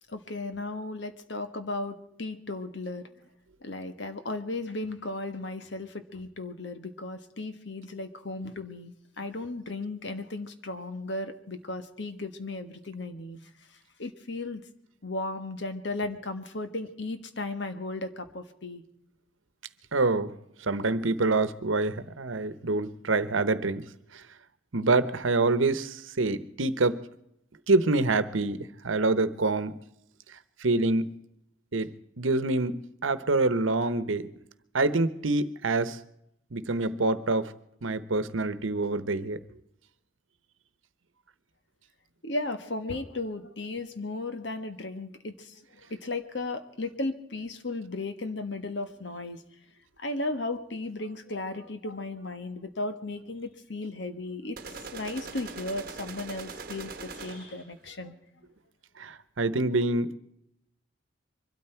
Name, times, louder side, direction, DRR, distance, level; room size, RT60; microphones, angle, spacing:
voice 1, 0.1-3.1 3.6-13.4 14.0-14.6 15.0-18.8 42.2-45.6 45.9-49.4 50.0-54.6 54.9-58.1, left 2 dB, 65° left, 9 dB, 1.4 m, -35 dB
voice 2, 19.9-20.3 20.7-23.8 24.7-27.0 27.7-28.6 28.8-29.8 30.6-31.1 31.7-31.9 32.2-34.3 34.7-36.0 36.5-37.5 37.8-39.4 59.0-60.2, right 3 dB, 85° right, 14 dB, 1.0 m, -26 dB
sound 1, 54.6-57.7, right 4 dB, 45° right, 1.2 m, -41 dB
24.0 x 13.0 x 4.5 m, 0.76 s
head